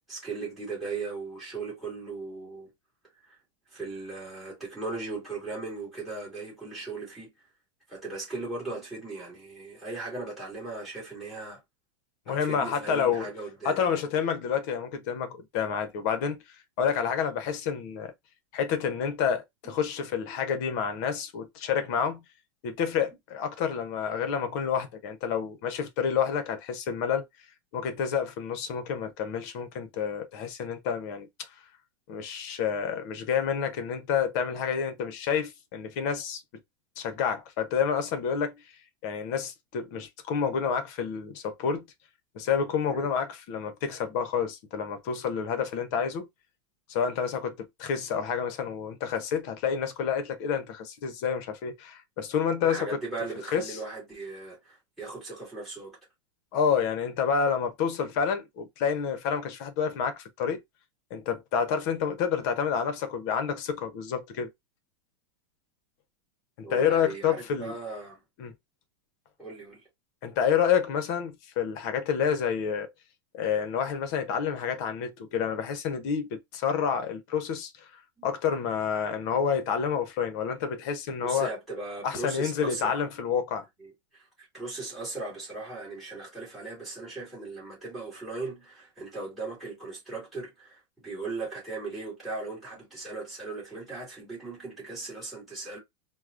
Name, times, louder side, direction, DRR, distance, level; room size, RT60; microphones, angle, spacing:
voice 1, 0.1-2.7 3.3-3.4 3.7-7.3 7.9-11.6 12.3-14.0 19.6-19.8 42.9-43.1 52.6-56.0 66.6-68.2 69.4-69.8 78.2-78.3 81.2-83.0 83.8-95.8, right 3 dB, ahead, 1.8 m, -38 dB
voice 2, 12.3-13.3 13.6-16.4 16.8-18.1 18.5-22.2 22.6-27.2 27.7-31.3 32.1-36.4 37.0-38.6 39.0-41.9 42.3-46.3 46.9-53.0 53.5-53.8 56.5-60.6 61.1-64.5 66.6-67.7 68.4-68.5 70.2-72.9 73.3-77.9 78.2-81.5 82.0-83.6, left 7 dB, 40° left, 0.7 m, -29 dB
4.6 x 2.0 x 2.4 m
supercardioid pair, 175°, 13 cm